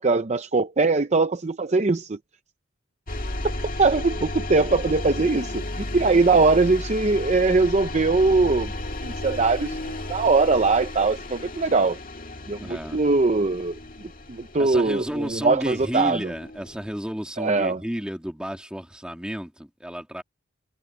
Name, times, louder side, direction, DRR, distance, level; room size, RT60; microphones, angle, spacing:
voice 1, 0.0-2.2 3.8-8.7 9.0-9.8 10.1-12.0 12.5-13.8 14.3-16.2 17.4-17.8, right 3 dB, 35° right, 0.6 m, -21 dB
sound 1, 3.1-17.0, left 2 dB, 45° left, 2.1 m, -34 dB
voice 2, 12.6-13.0 14.6-20.2, equal, 5° right, 2.7 m, -32 dB
head